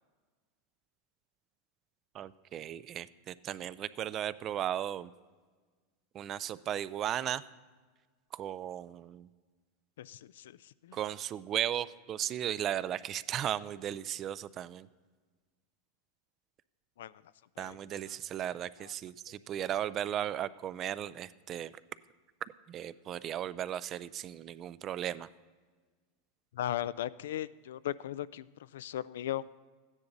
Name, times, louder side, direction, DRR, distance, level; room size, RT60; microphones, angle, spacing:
voice 1, 2.1-5.1 6.1-7.4 8.3-9.3 10.9-14.9 17.6-21.7 22.7-25.3, right 11 dB, 30° right, 17 dB, 0.3 m, -36 dB
voice 2, 10.0-10.6 10.8-11.0 17.0-17.1 17.6-17.8 18.8-18.9 26.5-28.5 28.7-29.4, left 12 dB, 85° left, 18 dB, 0.3 m, -37 dB
13.5 x 9.8 x 4.0 m, 1.4 s
supercardioid pair, 150°, 0 cm